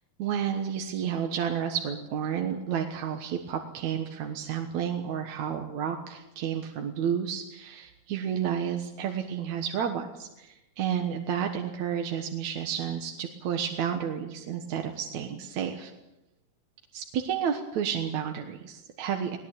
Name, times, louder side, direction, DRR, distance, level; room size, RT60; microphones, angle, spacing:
voice 1, 0.2-15.9 16.9-19.4, right 8 dB, 60° right, 4 dB, 2.4 m, -31 dB
20.0 x 19.5 x 9.1 m, 0.95 s
omnidirectional pair, 4.0 m